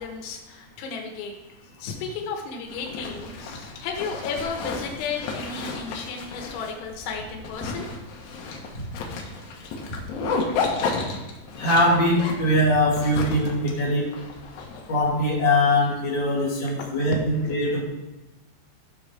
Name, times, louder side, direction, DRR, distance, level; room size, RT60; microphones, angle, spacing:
voice 1, 0.0-1.3 1.6-7.9 16.8-16.9, left 5 dB, 85° left, 2 dB, 3.9 m, -33 dB
Zipper (clothing), 2.7-15.2, left 4 dB, 65° left, 2.9 m, -32 dB
voice 2, 11.6-14.1 14.9-17.8, left 1 dB, 30° left, -7 dB, 3.0 m, -22 dB
15.0 x 6.5 x 3.5 m, 0.98 s
omnidirectional pair, 5.9 m